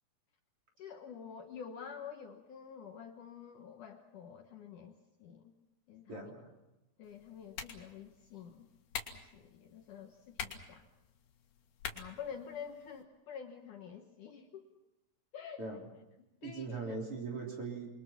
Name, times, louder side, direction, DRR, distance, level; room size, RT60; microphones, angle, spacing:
voice 1, 0.8-5.5 5.9-6.3 7.0-8.7 9.1-10.9 11.9-14.8 15.3-15.6 16.4-16.8, left 7 dB, 65° left, 4 dB, 2.3 m, -48 dB
voice 2, 6.1-6.5 15.6-15.8 16.4-17.9, right 4 dB, 35° right, 0 dB, 4.2 m, -40 dB
sound 1, 7.0-13.0, left 7 dB, 85° left, 3.9 m, -47 dB
28.5 x 23.0 x 5.9 m, 0.98 s
omnidirectional pair, 4.5 m